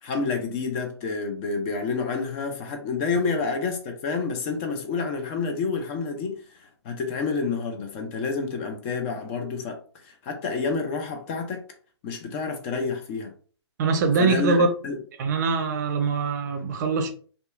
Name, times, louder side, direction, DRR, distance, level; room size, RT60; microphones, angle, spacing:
voice 1, 0.0-11.6 12.0-13.3 14.2-15.0, left 4 dB, 25° left, 0.5 m, -29 dB
voice 2, 13.8-14.7 15.2-17.1, right 4 dB, 40° right, 0.5 m, -23 dB
2.7 x 2.3 x 2.4 m
hypercardioid pair, 135°, 15 cm